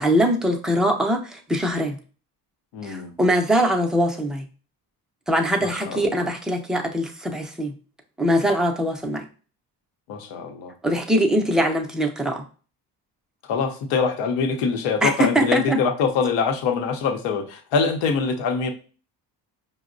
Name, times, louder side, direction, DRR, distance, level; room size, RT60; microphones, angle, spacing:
voice 1, 0.0-2.0 2.8-4.5 5.3-7.7 8.2-9.2 10.8-12.4 15.0-15.8, equal, ahead, 0.4 m, -22 dB
voice 2, 2.7-3.1 5.6-6.2 10.1-10.7 13.5-18.7, left 5 dB, 85° left, 0.7 m, -24 dB
5.1 x 2.0 x 2.5 m
cardioid pair, 100°, 43 cm